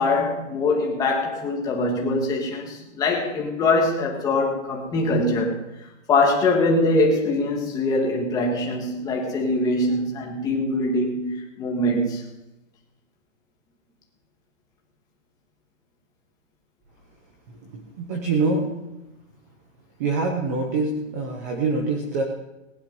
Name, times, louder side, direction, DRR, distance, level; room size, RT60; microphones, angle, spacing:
voice 1, 0.0-5.6 6.1-11.3 11.6-12.2, left 2 dB, 10° left, -1 dB, 1.6 m, -23 dB
voice 2, 17.7-18.7 20.0-22.2, right 3 dB, 15° right, 3 dB, 0.6 m, -25 dB
19.0 x 10.5 x 5.3 m, 0.99 s
hypercardioid pair, 180°, 39 cm